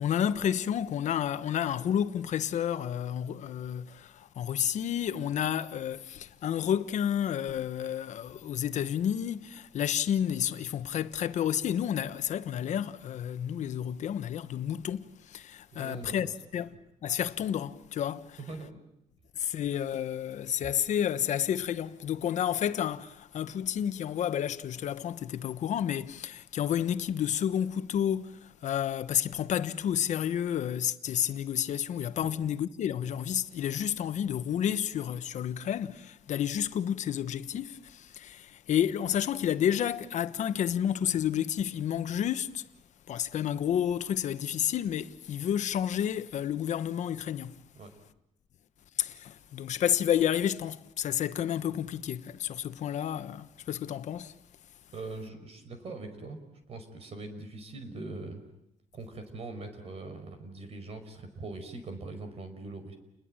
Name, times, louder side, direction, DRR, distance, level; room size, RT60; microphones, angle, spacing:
voice 1, 0.0-16.7 17.0-18.4 19.4-42.6 43.1-47.6 49.0-54.3, left 9 dB, 75° left, 1.3 m, -30 dB
voice 2, 15.7-16.3 18.4-18.8 32.2-32.3 47.7-47.9 54.9-56.4 56.7-58.4 58.9-63.0, right 3 dB, 55° right, 5.4 m, -42 dB
30.0 x 21.0 x 9.0 m
cardioid pair, 140°, 12 cm